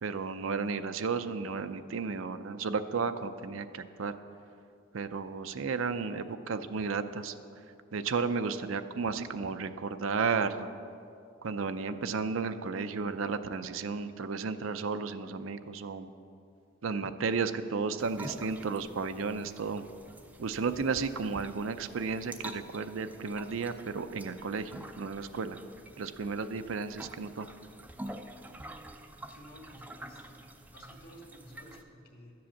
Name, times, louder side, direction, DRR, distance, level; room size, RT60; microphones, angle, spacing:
voice 1, 0.0-4.1 4.9-7.3 7.9-10.7 11.4-16.1 16.8-19.8 20.4-25.6 26.0-27.5, right 4 dB, 75° right, 10 dB, 0.5 m, -33 dB
sound 1, 18.0-31.8, right 1 dB, 10° right, 0.4 m, -48 dB
voice 2, 29.3-32.3, equal, 45° left, 1 dB, 2.2 m, -53 dB
12.5 x 7.7 x 7.1 m, 2.5 s
head